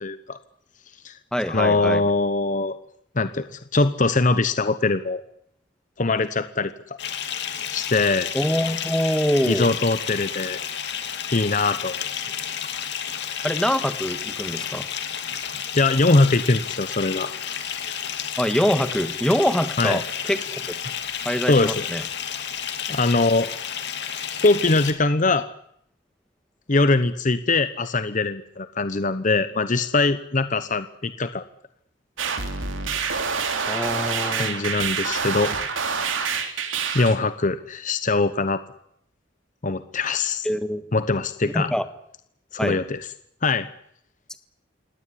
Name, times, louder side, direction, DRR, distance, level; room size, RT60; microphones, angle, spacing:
voice 1, 0.0-0.4 1.0-1.1 1.5-2.8 3.2-5.2 6.0-6.7 7.7-8.3 9.4-10.6 11.3-12.2 15.7-17.3 19.8-20.0 21.5-21.8 22.9-23.5 24.4-25.5 26.7-31.4 34.4-35.5 35.9-36.5 36.9-38.6 39.6-40.5 40.9-41.7 42.5-43.0 43.4-43.7, left 3 dB, 40° left, 12 dB, 1.0 m, -22 dB
voice 2, 1.3-2.0 8.3-9.7 13.4-14.9 18.4-20.6 21.2-22.0 33.7-34.6 40.4-40.8 41.5-41.9 42.6-42.8 44.3-44.4, equal, 5° left, 10 dB, 1.5 m, -24 dB
Bathtub (filling or washing) / Fill (with liquid), 7.0-24.9, left 8 dB, 60° left, 2.6 m, -31 dB
sound 1, 32.2-37.2, right 5 dB, 85° right, 3.3 m, -27 dB
25.5 x 18.0 x 10.0 m, 0.73 s
head